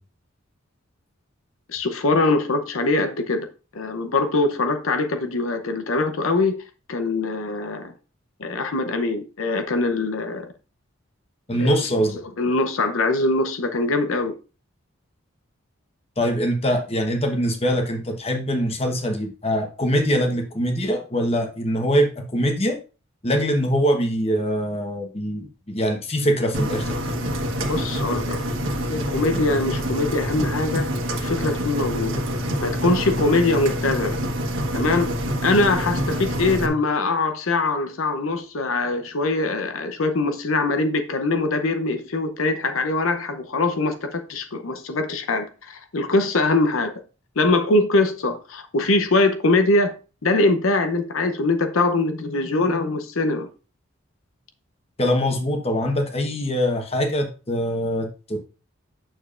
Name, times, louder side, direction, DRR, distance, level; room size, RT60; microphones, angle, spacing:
voice 1, 1.7-3.5 3.7-6.5 6.9-7.9 8.4-10.5 11.6-11.9 12.4-14.3 27.7-28.4 28.9-30.9 31.2-32.2 32.6-34.2 34.7-35.1 35.4-46.9 47.4-49.9 50.2-53.5, left 2 dB, 85° left, 0.7 m, -22 dB
voice 2, 11.5-12.2 16.2-22.8 23.2-26.9 55.0-58.4, equal, 30° left, 1.1 m, -23 dB
Engine, 26.5-36.7, equal, 70° right, 1.3 m, -26 dB
8.9 x 6.9 x 2.5 m
head